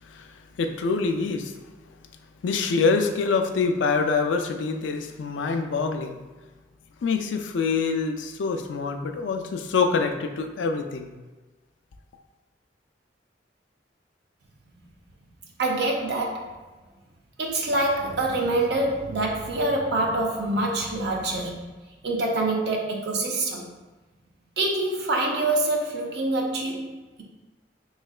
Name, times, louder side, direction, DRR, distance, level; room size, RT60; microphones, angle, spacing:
voice 1, 0.0-1.7 2.4-6.2 7.0-11.1, left 4 dB, 85° left, 5 dB, 0.4 m, -25 dB
voice 2, 15.6-16.5 17.4-21.7 22.0-23.7 24.6-27.2, right 2 dB, 65° right, 0 dB, 0.6 m, -26 dB
3.6 x 3.1 x 2.3 m, 1.2 s
head